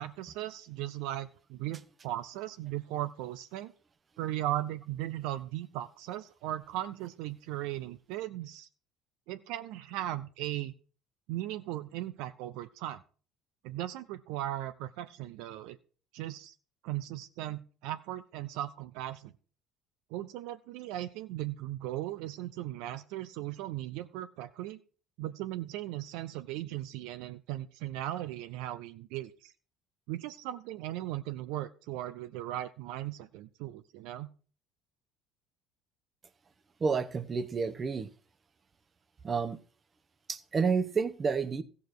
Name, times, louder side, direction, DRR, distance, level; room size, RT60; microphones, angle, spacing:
voice 1, 0.0-3.7 4.2-8.7 9.3-10.7 11.3-13.0 13.6-15.8 16.1-16.5 16.8-19.3 20.1-24.8 25.2-29.5 30.1-34.3, right 14 dB, 75° right, 0.5 m, -37 dB
voice 2, 36.8-38.1 39.2-39.6 40.3-41.6, right 5 dB, 35° right, 0.9 m, -30 dB
14.5 x 7.1 x 4.7 m
hypercardioid pair, 75°, 0 cm